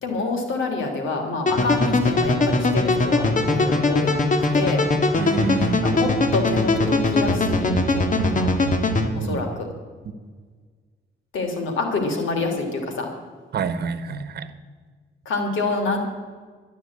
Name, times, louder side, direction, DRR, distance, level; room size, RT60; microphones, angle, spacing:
voice 1, 0.0-4.2 4.5-4.8 5.6-8.5 9.1-9.7 11.3-13.1 15.2-16.0, left 3 dB, 75° left, 4 dB, 3.2 m, -27 dB
sound 1, 1.5-9.1, left 2 dB, 40° left, 1.9 m, -21 dB
voice 2, 5.1-6.0 8.2-8.7 9.2-9.5 13.5-14.5, right 5 dB, 55° right, 12 dB, 1.2 m, -28 dB
12.5 x 10.5 x 8.6 m, 1.5 s
cardioid pair, 90°, 20 cm